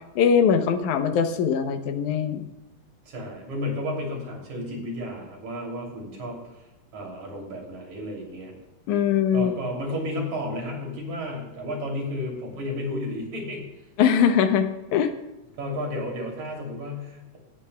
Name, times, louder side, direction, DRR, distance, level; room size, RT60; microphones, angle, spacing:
voice 1, 0.2-2.5 8.9-9.5 14.0-15.1, left 7 dB, 85° left, 8 dB, 2.3 m, -21 dB
voice 2, 3.1-6.6 6.9-8.5 9.3-13.7 15.6-17.4, left 1 dB, 70° right, -1 dB, 4.3 m, -32 dB
18.5 x 12.0 x 2.3 m, 1.0 s
omnidirectional pair, 3.4 m